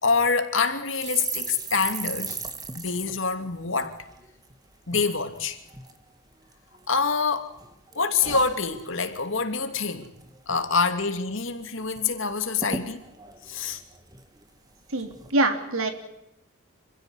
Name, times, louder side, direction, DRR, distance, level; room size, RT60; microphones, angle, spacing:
voice 1, 0.0-2.4 2.7-4.0 4.9-5.6 6.9-7.5 7.9-10.1 10.5-13.0 13.4-13.8, left 4 dB, 60° left, 2.9 m, -26 dB
sound 1, 1.0-4.5 4.9-5.1 5.3-6.0 6.5-7.3 7.6-9.3 9.6-9.8 10.0-10.6 11.0-11.1 11.3-12.0 12.3-12.4 12.6-14.5 15.0-15.3, right 4 dB, 15° right, 1.8 m, -37 dB
voice 2, 14.9-15.9, right 2 dB, 75° right, 3.5 m, -24 dB
27.0 x 16.0 x 9.9 m
head